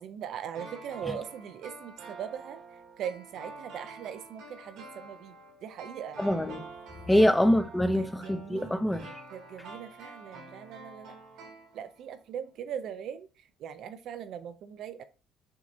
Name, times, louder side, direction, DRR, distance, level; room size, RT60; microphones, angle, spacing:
voice 1, 0.0-2.6 3.0-5.4 5.6-6.2 7.1-7.4 7.9-8.8 9.3-11.1 11.7-13.3 13.6-15.0, right 8 dB, 65° right, 0.4 m, -40 dB
sound 1, 0.5-12.2 12.5-12.6, right 3 dB, 90° right, 1.9 m, -47 dB
voice 2, 6.2-6.7 7.1-9.1, equal, 5° left, 0.5 m, -25 dB
6.0 x 2.7 x 2.6 m
cardioid pair, 110°, 0 cm